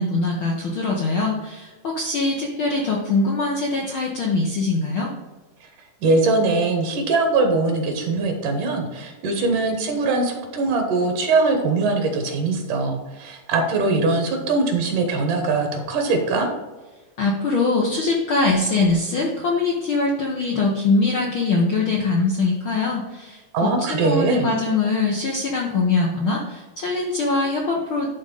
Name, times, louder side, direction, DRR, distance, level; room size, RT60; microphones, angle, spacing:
voice 1, 0.0-5.1 17.2-28.1, left 3 dB, 65° left, -1 dB, 1.2 m, -22 dB
voice 2, 6.0-16.5 23.5-24.5, right 3 dB, 70° right, 4 dB, 2.7 m, -21 dB
11.0 x 3.8 x 5.4 m, 1.2 s
omnidirectional pair, 3.8 m